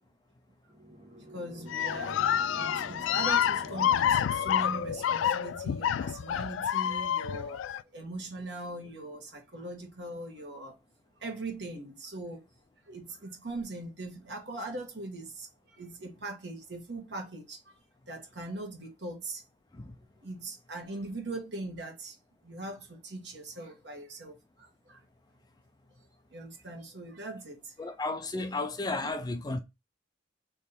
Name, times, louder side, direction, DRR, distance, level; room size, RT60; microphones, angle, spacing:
sound 1, 0.7-5.6, right 1 dB, 25° right, 1.1 m, -47 dB
voice 1, 1.3-7.6 7.9-10.8 11.2-12.4 12.9-17.8 18.1-19.4 20.2-22.2 22.4-25.0 26.3-27.7 29.0-29.1, right 2 dB, 65° right, 1.4 m, -41 dB
sound 2, 1.7-7.8, left 9 dB, 85° left, 0.3 m, -28 dB
voice 2, 27.8-29.6, left 2 dB, 20° left, 0.4 m, -33 dB
3.5 x 3.2 x 4.1 m
head